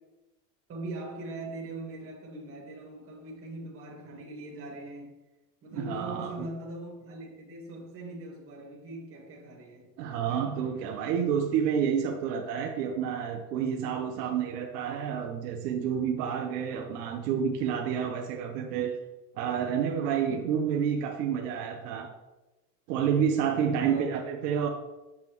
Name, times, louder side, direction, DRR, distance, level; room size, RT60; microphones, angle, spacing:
voice 1, 0.7-5.1 5.6-9.9 23.6-24.0, right 2 dB, 25° right, -2 dB, 2.1 m, -41 dB
voice 2, 5.7-6.5 10.0-18.9 19.4-22.1 22.9-24.7, right 8 dB, 70° right, 3 dB, 1.0 m, -29 dB
7.5 x 7.3 x 3.1 m, 1.1 s
supercardioid pair, 140°, 49 cm